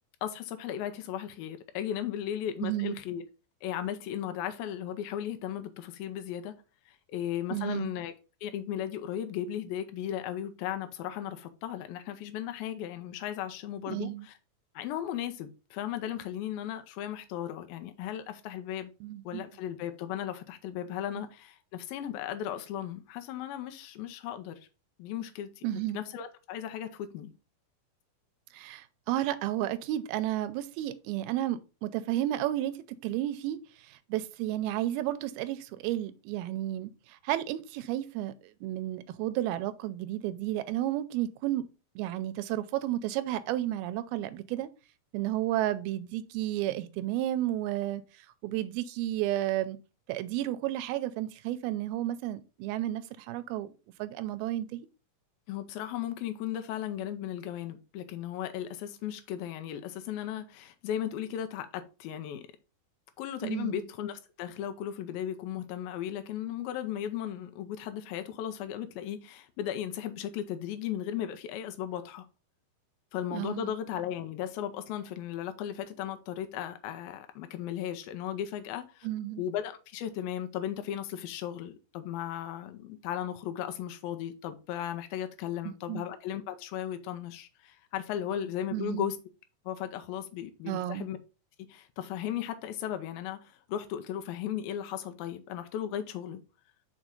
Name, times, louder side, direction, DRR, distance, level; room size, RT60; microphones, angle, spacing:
voice 1, 0.2-3.2 3.6-6.5 7.1-8.1 8.4-14.3 14.8-18.9 19.2-24.6 25.0-25.7 25.9-27.3 55.5-62.5 63.2-72.3 73.1-79.1 79.4-89.2 89.7-91.2 91.7-96.4, left 10 dB, 80° left, 2.5 m, -36 dB
voice 2, 2.6-3.0 7.5-7.9 13.9-14.3 19.0-19.4 25.6-26.0 28.5-33.6 33.9-38.3 38.6-41.6 42.0-44.7 45.1-48.0 48.4-49.8 50.1-53.7 54.0-54.9 63.4-63.7 73.3-73.7 79.0-79.4 85.6-86.1 88.7-89.1 90.7-91.1, right 14 dB, 85° right, 2.5 m, -32 dB
6.0 x 4.3 x 3.8 m
omnidirectional pair, 4.3 m